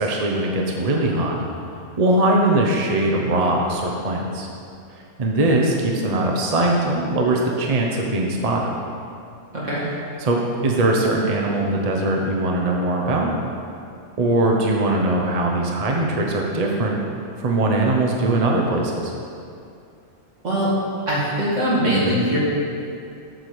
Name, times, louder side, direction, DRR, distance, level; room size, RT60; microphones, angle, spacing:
voice 1, 0.0-1.4 2.0-4.5 5.2-8.7 10.2-13.3 14.2-17.0 17.4-19.1, right 2 dB, 35° right, -1 dB, 0.8 m, -21 dB
voice 2, 21.1-22.4, equal, 75° right, -7 dB, 2.5 m, -21 dB
7.7 x 4.7 x 6.9 m, 2.5 s
omnidirectional pair, 1.3 m